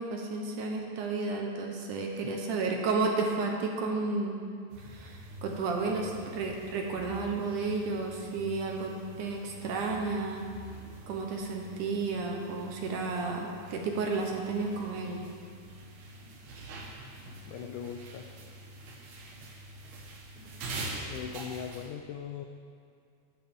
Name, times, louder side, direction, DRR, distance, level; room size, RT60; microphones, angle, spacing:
voice 1, 0.0-4.4 4.8-10.5 11.1-15.2, right 3 dB, 70° right, 1 dB, 2.3 m, -32 dB
sound 1, 4.7-21.9, right 2 dB, 85° right, 3.3 m, -45 dB
voice 2, 17.5-18.3 21.1-22.5, left 8 dB, 90° left, 4 dB, 1.7 m, -40 dB
13.5 x 11.5 x 3.6 m, 2.3 s
omnidirectional pair, 4.2 m